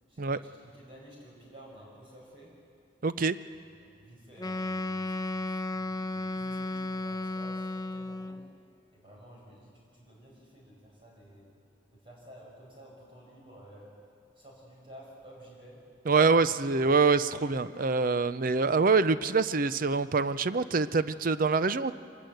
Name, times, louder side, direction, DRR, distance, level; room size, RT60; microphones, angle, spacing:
voice 1, 0.1-2.6 3.6-8.5 8.9-11.5 11.9-13.9 14.4-15.8 16.4-16.6, right 1 dB, 30° right, -3 dB, 5.5 m, -52 dB
voice 2, 3.0-3.4 16.1-21.9, right 4 dB, 45° right, 14 dB, 0.6 m, -25 dB
Wind instrument woodwind instrument, 4.4-8.5, left 2 dB, 20° left, 0.6 m, -34 dB
25.0 x 19.5 x 7.9 m, 2.4 s
head